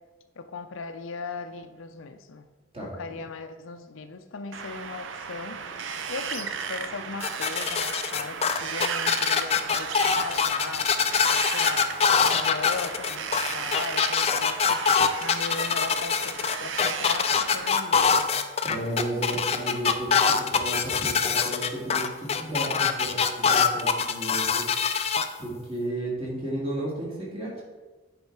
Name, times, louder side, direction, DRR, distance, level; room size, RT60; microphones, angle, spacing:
voice 1, 0.4-2.5 2.8-11.9 12.2-14.8 15.2-18.4, left 4 dB, 85° left, 9 dB, 0.5 m, -38 dB
Wind, 4.5-17.7, right 6 dB, 75° right, 0.5 m, -35 dB
sound 1, 7.2-25.2, left 6 dB, 30° left, 0.3 m, -24 dB
voice 2, 18.6-24.7 25.4-27.6, right 1 dB, 30° right, -5 dB, 2.2 m, -33 dB
9.5 x 3.7 x 4.7 m, 1.3 s
head